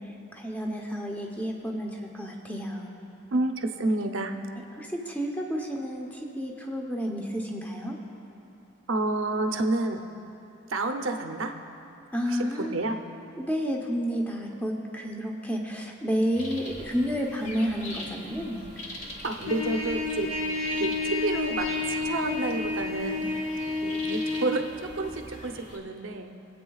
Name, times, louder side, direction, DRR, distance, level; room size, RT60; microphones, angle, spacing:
voice 1, 0.3-2.9 4.8-6.1 6.4-8.0 12.1-12.7 13.4-18.7, equal, 10° left, 0 dB, 0.8 m, -30 dB
voice 2, 3.3-4.3 8.9-10.1 10.7-11.5 12.3-13.0 19.2-20.3 20.8-21.7 22.0-23.3 23.8-26.3, right 2 dB, 70° right, 4 dB, 0.7 m, -29 dB
sound 1, 16.3-25.8, left 1 dB, 35° left, 1.2 m, -43 dB
Trumpet, 19.5-24.5, left 3 dB, 75° left, 2.2 m, -30 dB
23.5 x 8.3 x 2.4 m, 2.8 s
head